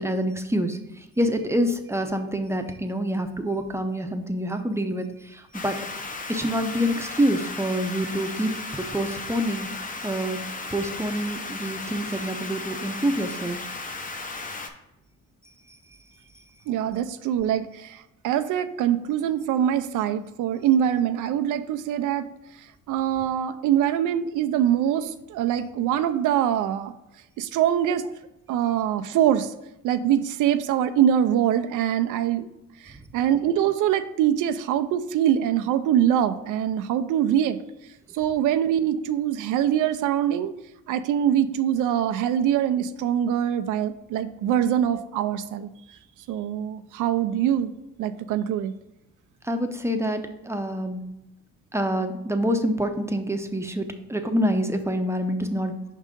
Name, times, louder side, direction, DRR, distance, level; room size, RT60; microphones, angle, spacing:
voice 1, 0.0-5.8 6.3-8.5 8.9-10.4 10.7-13.6 49.4-51.1 51.7-55.8, equal, 10° right, 6 dB, 0.6 m, -26 dB
sound 1, 5.5-14.7, left 3 dB, 25° left, 0.8 m, -35 dB
voice 2, 16.7-22.3 22.9-26.9 27.4-28.1 28.5-29.5 29.8-32.5 32.8-37.6 38.1-40.5 40.9-45.7 46.3-47.7 48.0-48.7, right 10 dB, 85° right, 9 dB, 0.5 m, -23 dB
5.4 x 3.7 x 5.1 m, 0.89 s
cardioid pair, 90°, 30 cm